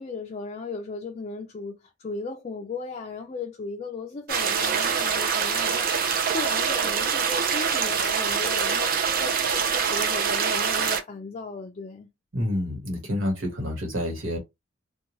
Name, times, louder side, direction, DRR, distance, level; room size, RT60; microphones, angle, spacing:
voice 1, 0.0-12.1, left 3 dB, 35° left, 0.4 m, -36 dB
sound 1, 4.3-11.0, right 6 dB, 50° right, 0.5 m, -25 dB
voice 2, 12.3-14.4, left 1 dB, 80° right, 1.3 m, -28 dB
2.7 x 2.2 x 2.9 m
head